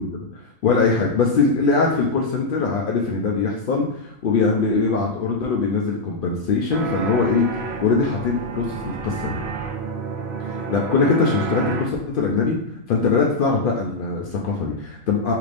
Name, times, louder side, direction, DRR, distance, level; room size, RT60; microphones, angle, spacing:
voice 1, 0.6-7.5 7.8-9.4 10.5-12.6 12.9-15.3, left 4 dB, 85° left, -1 dB, 0.4 m, -21 dB
sound 1, 6.7-11.9, right 5 dB, 65° right, 0.5 m, -30 dB
3.4 x 2.5 x 3.2 m, 0.80 s
omnidirectional pair, 1.4 m